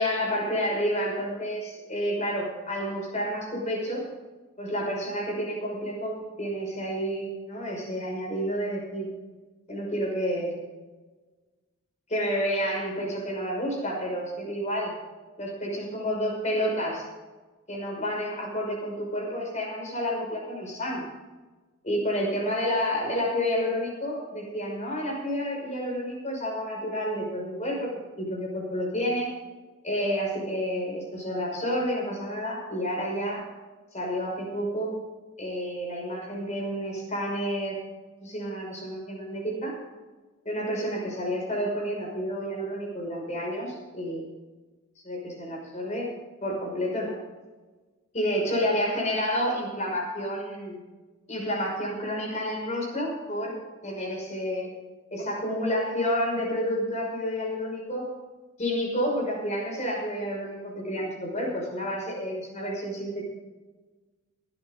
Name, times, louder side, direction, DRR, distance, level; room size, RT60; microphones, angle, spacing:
voice 1, 0.0-4.0 4.6-9.1 9.7-10.5 12.1-14.9 15.4-17.1 17.7-21.0 21.8-27.9 28.2-29.3 29.8-33.5 33.9-34.9 35.4-37.8 38.2-39.8 40.4-44.3 45.0-46.1 46.4-47.2 48.1-50.8 51.3-53.6 53.8-54.7 55.1-58.1 58.6-63.2, equal, 35° left, 0 dB, 5.9 m, -30 dB
18.0 x 13.0 x 3.8 m, 1.3 s
head